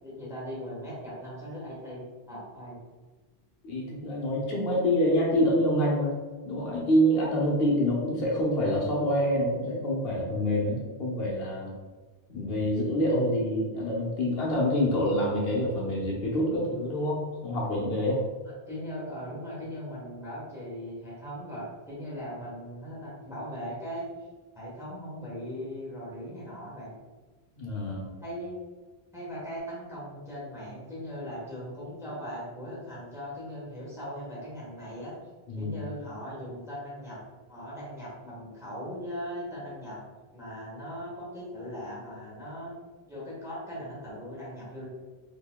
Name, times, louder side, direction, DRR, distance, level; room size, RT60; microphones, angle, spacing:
voice 1, 0.0-2.0 2.3-2.8 18.4-24.1 24.5-26.9 28.2-28.6 29.1-35.2 35.6-37.2 37.5-40.0 40.3-42.7 43.1-44.9, equal, 5° right, -8 dB, 1.1 m, -39 dB
voice 2, 3.6-6.1 6.5-11.7 12.3-18.2 27.6-28.1 35.5-35.8, equal, 70° left, -3 dB, 1.0 m, -26 dB
3.9 x 2.8 x 2.2 m, 1.3 s
omnidirectional pair, 1.1 m